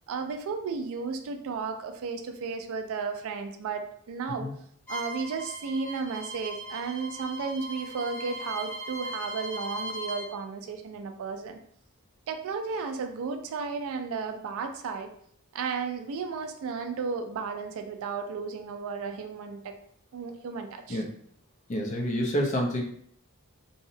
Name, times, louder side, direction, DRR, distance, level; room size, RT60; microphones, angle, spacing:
voice 1, 0.1-4.5 4.9-11.6 12.3-15.1 15.5-19.7 20.1-21.0, right 5 dB, 65° right, 6 dB, 0.3 m, -34 dB
Bowed string instrument, 4.9-10.3, equal, 10° left, 0.8 m, -38 dB
voice 2, 21.7-22.8, equal, 35° left, 0 dB, 0.5 m, -28 dB
2.7 x 2.0 x 2.7 m, 0.63 s
head